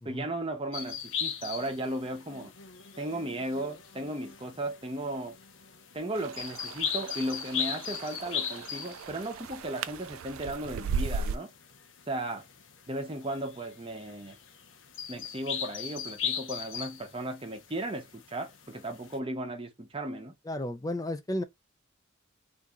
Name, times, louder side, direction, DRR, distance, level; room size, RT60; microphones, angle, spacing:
voice 1, 0.0-2.5 3.0-5.4 5.9-11.5 12.1-12.4 12.9-14.4 15.1-20.3, right 1 dB, 25° right, 0.7 m, -35 dB
sound 1, 0.7-19.2, left 8 dB, 60° left, 0.7 m, -39 dB
sound 2, 6.1-11.4, right 5 dB, 70° right, 0.3 m, -37 dB
voice 2, 20.4-21.4, left 1 dB, 15° left, 0.4 m, -33 dB
2.8 x 2.6 x 3.6 m
head